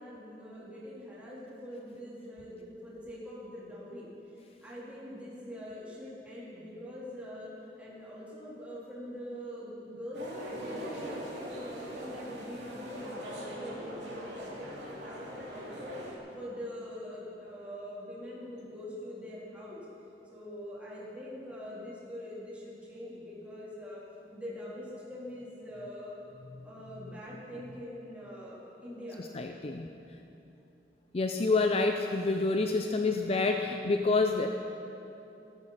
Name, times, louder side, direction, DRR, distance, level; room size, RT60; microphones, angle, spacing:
voice 1, 0.0-4.1 4.6-7.5 7.8-15.9 16.3-19.8 20.3-24.0 24.3-26.2 26.6-29.2, left 1 dB, 10° right, -8 dB, 3.4 m, -43 dB
sound 1, 10.1-16.2, equal, 75° right, 2.7 m, -42 dB
voice 2, 29.3-29.9 31.1-34.5, left 3 dB, 35° left, 5 dB, 0.5 m, -27 dB
14.0 x 14.0 x 4.2 m, 2.8 s
head